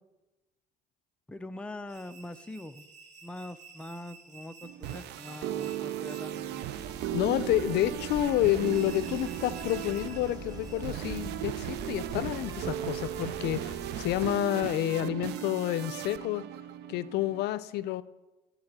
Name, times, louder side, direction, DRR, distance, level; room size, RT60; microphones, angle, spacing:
voice 1, 1.3-2.9 3.2-6.7, left 1 dB, 5° left, 9 dB, 0.4 m, -43 dB
sound 1, 1.9-11.0, right 4 dB, 45° right, 1.8 m, -53 dB
sound 2, 4.6-17.4, right 13 dB, 80° right, 0.5 m, -37 dB
sound 3, 6.7-14.4, right 3 dB, 20° right, 1.0 m, -43 dB
voice 2, 7.1-16.4 16.9-18.0, left 14 dB, 80° left, 16 dB, 0.4 m, -29 dB
11.5 x 4.1 x 7.3 m, 1.1 s
cardioid pair, 110°, 17 cm